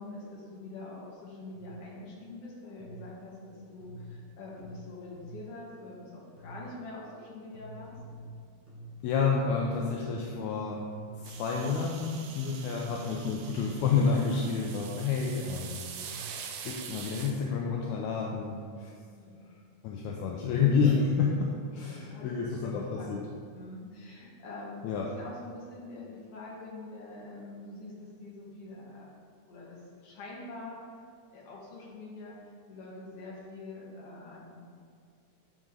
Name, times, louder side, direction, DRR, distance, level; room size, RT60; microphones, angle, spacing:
voice 1, 0.0-7.9 19.0-19.4 22.0-23.1 23.5-29.1 29.5-30.8 31.3-34.6, left 2 dB, 55° left, -5 dB, 2.6 m, -45 dB
sound 1, 1.5-1.9 2.8-3.2 3.8-5.6 6.4-6.8 7.5-9.6 9.9-10.4 10.9-11.7 12.5-16.5, right 1 dB, 50° right, 2.2 m, -48 dB
voice 2, 9.0-10.9 11.2-15.8 16.7-18.9 19.8-23.3 24.8-25.1, left 5 dB, 80° left, -1 dB, 2.0 m, -29 dB
sound 2, 11.2-17.3, right 7 dB, 80° right, 2.1 m, -44 dB
11.0 x 5.3 x 3.8 m, 2.2 s
omnidirectional pair, 3.5 m